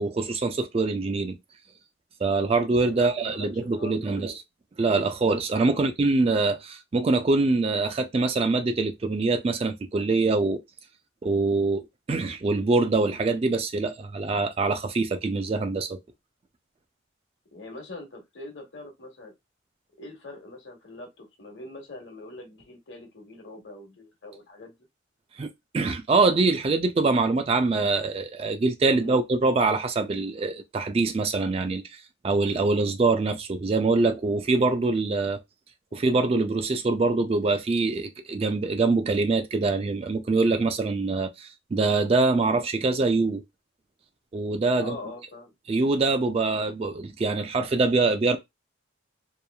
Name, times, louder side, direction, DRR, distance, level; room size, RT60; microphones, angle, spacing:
voice 1, 0.0-1.4 2.2-4.4 4.8-10.6 11.2-16.0 25.4-35.4 35.9-43.4 44.3-45.0 45.7-48.4, right 3 dB, 30° right, 0.3 m, -24 dB
voice 2, 2.9-4.2 5.7-5.9 17.5-19.3 20.0-24.7 29.0-29.2 44.7-45.5, left 2 dB, 70° left, 1.1 m, -43 dB
3.0 x 2.3 x 2.2 m
head